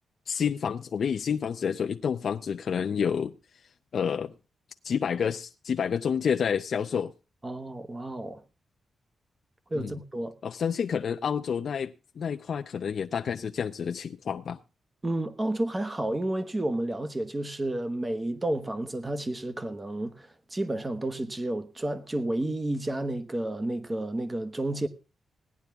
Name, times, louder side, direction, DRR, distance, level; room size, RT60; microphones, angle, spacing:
voice 1, 0.3-3.4 3.9-4.3 4.8-7.1 9.7-10.0 10.4-14.6, left 7 dB, 50° left, 0.5 m, -29 dB
voice 2, 7.4-8.4 9.7-10.3 15.0-24.9, right 1 dB, 15° right, 1.1 m, -31 dB
17.5 x 10.5 x 3.5 m
wide cardioid pair, 175°, 0 cm